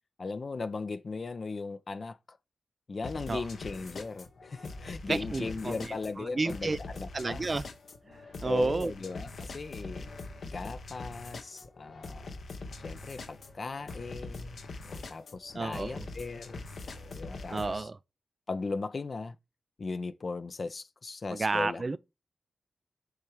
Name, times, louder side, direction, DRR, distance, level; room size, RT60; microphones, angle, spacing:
voice 1, 0.2-2.4 2.9-7.4 8.4-10.1 10.4-12.4 12.8-17.9 18.5-19.4 19.8-22.0, left 3 dB, 55° left, 0.6 m, -38 dB
sound 1, 3.0-17.8, left 3 dB, 75° left, 1.1 m, -43 dB
voice 2, 5.1-6.8 7.1-7.6 8.1-8.9 15.5-16.1 17.5-18.0 21.3-22.0, right 3 dB, 45° right, 0.4 m, -31 dB
7.9 x 3.6 x 4.5 m
cardioid pair, 50°, 0 cm